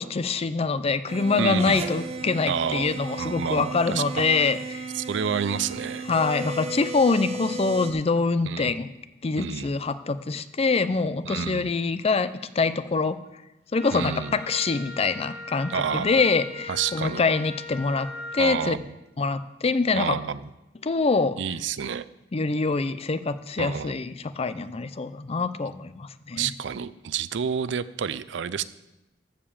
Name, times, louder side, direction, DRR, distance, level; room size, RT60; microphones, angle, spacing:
voice 1, 0.0-4.9 6.1-8.9 9.2-12.3 12.6-13.2 13.7-18.7 19.2-20.2 20.8-21.4 22.3-26.5, left 4 dB, 35° left, 13 dB, 0.5 m, -25 dB
sound 1, 1.1-7.9, right 3 dB, 35° right, 1.0 m, -35 dB
voice 2, 1.4-1.8 2.5-4.5 4.9-6.1 8.4-8.8 9.4-9.8 11.2-11.7 13.9-14.4 15.7-16.2 16.7-17.3 18.4-18.8 19.9-20.5 21.4-22.1 23.6-24.0 26.3-28.6, right 7 dB, 90° right, 16 dB, 0.5 m, -29 dB
Wind instrument woodwind instrument, 13.7-18.6, left 2 dB, 65° left, 3.1 m, -40 dB
14.5 x 5.0 x 7.2 m, 0.95 s
head